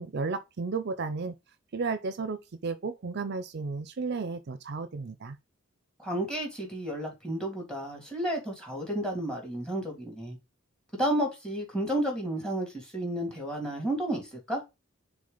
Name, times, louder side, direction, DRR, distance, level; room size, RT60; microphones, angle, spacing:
voice 1, 0.0-1.4 1.7-5.4, right 4 dB, 55° right, 0.5 m, -33 dB
voice 2, 6.0-10.4 10.9-14.6, right 1 dB, 5° left, 2.9 m, -32 dB
6.7 x 3.7 x 3.9 m
head